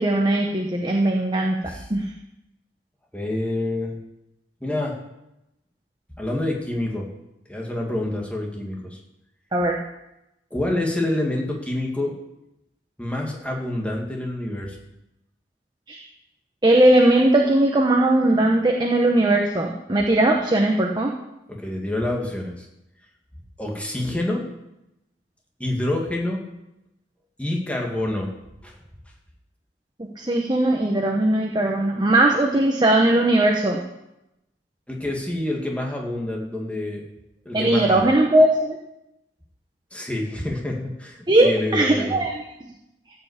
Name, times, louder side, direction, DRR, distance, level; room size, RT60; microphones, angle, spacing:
voice 1, 0.0-1.6 1.9-2.1 9.5-9.7 15.9-16.0 16.6-21.1 30.2-33.8 37.5-38.8 41.3-42.3, right 1 dB, 25° right, 1 dB, 1.1 m, -19 dB
voice 2, 3.1-4.0 4.6-5.0 6.2-7.1 7.5-9.0 10.5-12.1 13.0-14.8 20.3-20.4 21.5-22.7 23.6-24.5 25.6-26.4 27.4-28.3 28.6-28.7 34.9-37.0 37.5-38.1 39.9-42.2, left 1 dB, 10° left, -1 dB, 2.2 m, -27 dB
14.5 x 5.8 x 8.2 m, 0.89 s
head